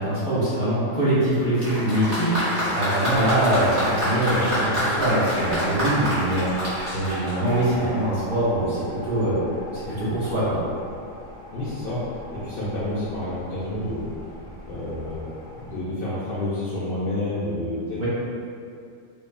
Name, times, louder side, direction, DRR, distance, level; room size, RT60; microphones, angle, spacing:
voice 1, 0.0-8.8 9.0-9.4 9.7-10.6 18.0-18.1, right 1 dB, 45° right, -11 dB, 0.9 m, -23 dB
Applause, 1.6-8.1 9.0-9.1, equal, 25° right, 0.6 m, -27 dB
sound 1, 3.1-15.8, left 1 dB, 15° left, 1.1 m, -38 dB
voice 2, 11.5-14.1 14.6-18.0, left 1 dB, 70° left, -9 dB, 0.5 m, -29 dB
2.5 x 2.3 x 2.3 m, 2.4 s
omnidirectional pair, 1.5 m